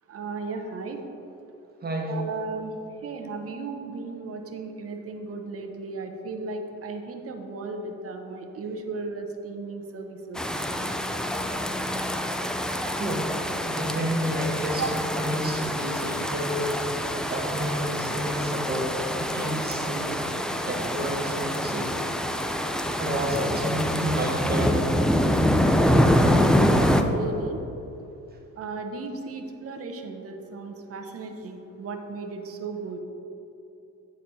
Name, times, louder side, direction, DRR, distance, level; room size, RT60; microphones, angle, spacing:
voice 1, 0.1-1.0 2.1-2.7 3.0-10.4 14.8-14.9 27.1-27.6 28.6-33.0, right 3 dB, 50° right, 4 dB, 0.8 m, -35 dB
voice 2, 1.8-2.2 13.0-13.3 13.6-21.9 23.0-24.8, right 1 dB, 30° right, 0 dB, 1.2 m, -30 dB
sound 1, 10.4-27.0, equal, ahead, 0.3 m, -25 dB
8.9 x 4.2 x 4.0 m, 2.9 s
cardioid pair, 90°, 30 cm